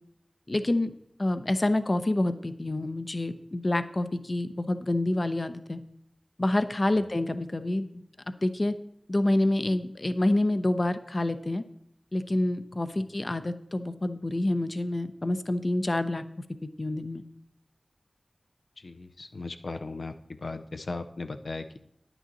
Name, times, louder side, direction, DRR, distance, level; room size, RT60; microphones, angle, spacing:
voice 1, 0.5-0.9 1.2-5.8 6.4-7.9 8.4-8.7 9.1-11.6 12.1-16.2 16.6-17.2, left 1 dB, 40° left, 10 dB, 0.7 m, -27 dB
voice 2, 18.8-21.8, left 3 dB, 85° left, 7 dB, 0.5 m, -37 dB
10.5 x 9.1 x 4.0 m, 0.74 s
wide cardioid pair, 70°, 0 cm